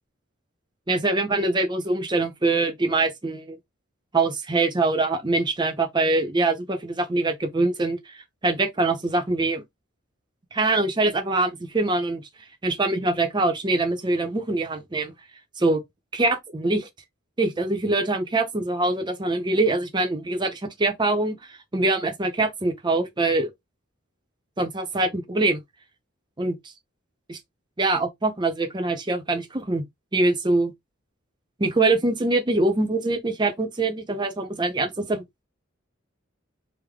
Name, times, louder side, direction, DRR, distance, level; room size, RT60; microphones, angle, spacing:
voice 1, 0.9-3.6 4.1-8.0 8.4-9.6 10.5-12.2 12.6-15.1 15.6-15.8 16.1-16.9 17.4-23.5 24.6-25.6 26.4-26.5 27.3-27.4 27.8-29.8 30.1-30.7 31.6-35.2, right 2 dB, 20° right, 0.6 m, -24 dB
3.5 x 2.1 x 3.3 m
head